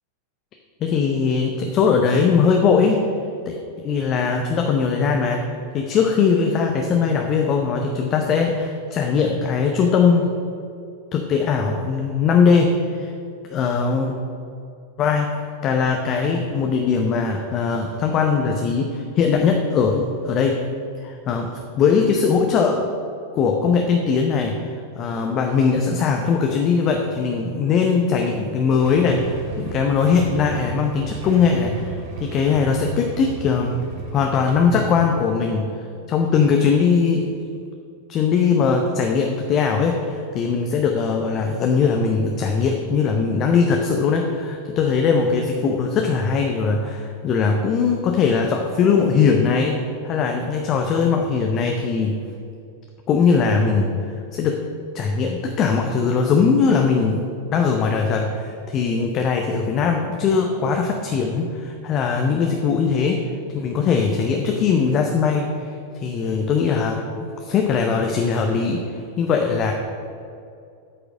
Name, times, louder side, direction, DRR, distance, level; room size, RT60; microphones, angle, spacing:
voice 1, 0.8-3.0 3.5-5.4 5.7-10.3 11.1-13.1 13.5-14.2 15.0-20.6 21.0-22.8 23.3-33.7 34.1-35.7 36.1-37.3 38.1-52.2 53.1-53.9 54.3-54.6 54.9-63.2 63.5-68.8 69.2-69.7, left 5 dB, 30° left, 2 dB, 0.7 m, -20 dB
Motorcycle / Engine starting / Idling, 28.8-35.0, right 3 dB, 50° right, 1.5 m, -33 dB
8.7 x 4.9 x 6.5 m, 2.4 s
figure-of-eight pair, 90°, 0 cm